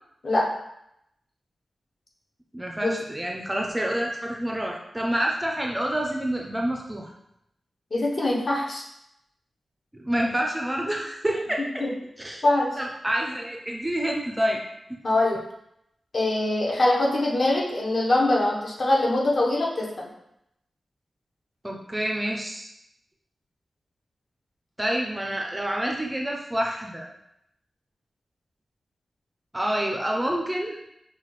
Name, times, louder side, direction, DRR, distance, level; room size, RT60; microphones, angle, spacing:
voice 1, 2.5-7.1 9.9-11.9 12.2-12.4 12.8-14.6 21.6-22.7 24.8-27.1 29.5-30.9, right 1 dB, 10° right, 0 dB, 0.4 m, -28 dB
voice 2, 7.9-8.8 11.8-11.9 12.4-12.7 15.0-15.4 16.1-20.1, left 2 dB, 50° left, -3 dB, 0.8 m, -23 dB
5.7 x 2.2 x 3.0 m, 0.79 s
wide cardioid pair, 145°, 0 cm